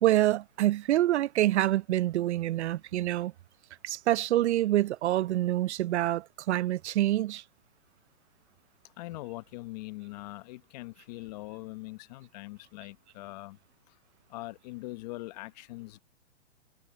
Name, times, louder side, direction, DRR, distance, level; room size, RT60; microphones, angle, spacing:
voice 1, 0.0-3.3 3.8-7.4, right 14 dB, 70° right, 0.5 m, -26 dB
voice 2, 9.0-13.6 14.3-16.0, left 20 dB, 35° left, 1.0 m, -42 dB
hypercardioid pair, 150°, 35 cm